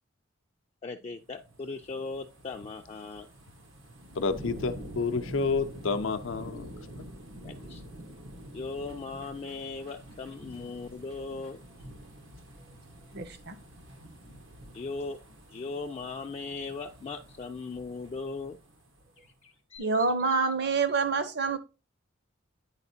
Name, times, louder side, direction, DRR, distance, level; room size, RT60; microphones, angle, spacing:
voice 1, 0.8-3.3 7.4-7.8 8.5-11.6 14.7-15.2 15.5-18.6 19.2-20.0, left 4 dB, 30° left, 0.3 m, -38 dB
sound 1, 1.2-19.3 19.8-19.9, equal, 90° right, 1.1 m, -47 dB
voice 2, 4.1-6.7, left 4 dB, 85° left, 0.5 m, -29 dB
voice 3, 13.1-13.5 19.8-21.6, right 4 dB, 60° right, 0.7 m, -27 dB
9.7 x 4.2 x 2.7 m
head